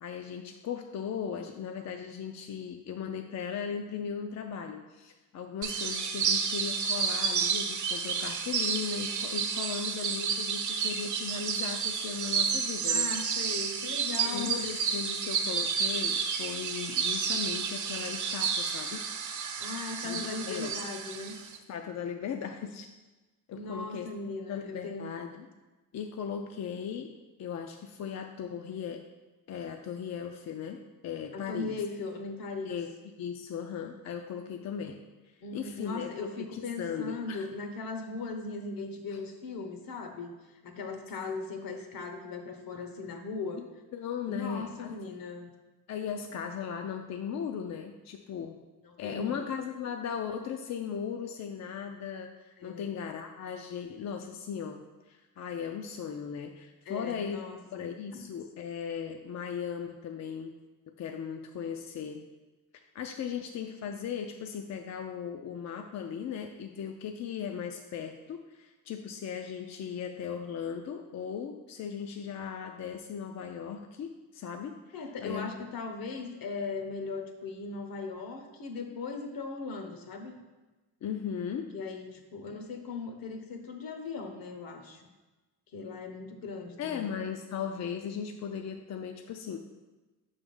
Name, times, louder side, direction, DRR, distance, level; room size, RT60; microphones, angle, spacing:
voice 1, 0.0-13.4 14.2-19.1 20.0-20.7 21.7-22.9 23.5-24.1 24.5-25.5 25.9-27.1 27.4-29.0 29.5-31.8 32.6-32.9 33.2-35.0 35.5-36.1 36.4-37.5 43.9-44.9 45.9-48.6 49.0-57.4 57.7-60.5 61.0-62.2 62.9-75.5 81.0-81.7 86.8-89.6, left 7 dB, 50° left, 4 dB, 0.4 m, -37 dB
sound 1, 5.6-21.6, right 6 dB, 55° right, 0.7 m, -31 dB
voice 2, 12.9-14.5 19.6-21.3 23.5-25.1 31.3-32.7 35.4-43.6 44.3-45.5 48.8-49.4 52.6-52.9 56.8-58.2 74.9-80.4 81.7-85.1 85.7-87.1, left 4 dB, 70° left, 5 dB, 1.0 m, -38 dB
6.3 x 3.5 x 5.3 m, 1.2 s
cardioid pair, 135°, 36 cm